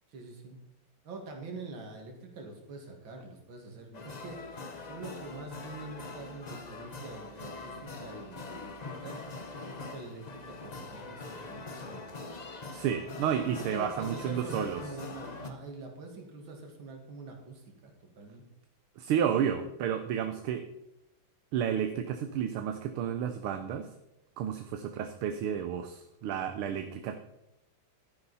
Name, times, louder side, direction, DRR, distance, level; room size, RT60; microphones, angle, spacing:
voice 1, 0.1-0.6 1.0-9.2 9.8-12.1 13.6-18.4, right 3 dB, 65° right, 2 dB, 2.7 m, -45 dB
sound 1, 3.9-15.5, left 3 dB, 50° left, 0.5 m, -43 dB
voice 2, 12.7-14.8 19.0-20.6 21.5-23.9 24.4-27.2, right 8 dB, 80° right, 8 dB, 1.6 m, -31 dB
12.0 x 9.7 x 4.1 m, 0.84 s
omnidirectional pair, 2.4 m